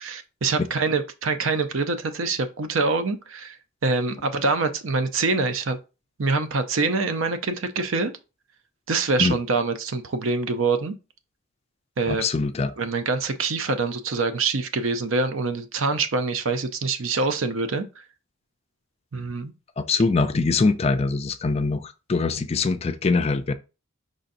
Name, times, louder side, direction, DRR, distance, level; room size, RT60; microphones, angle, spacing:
voice 1, 0.1-3.6 3.8-5.8 6.2-8.1 8.9-10.9 12.0-12.2 12.8-17.9 19.1-19.5, right 3 dB, 70° right, 0.6 m, -25 dB
voice 2, 12.1-12.7 19.8-23.5, left 3 dB, 30° left, 0.4 m, -23 dB
5.0 x 4.0 x 2.6 m
head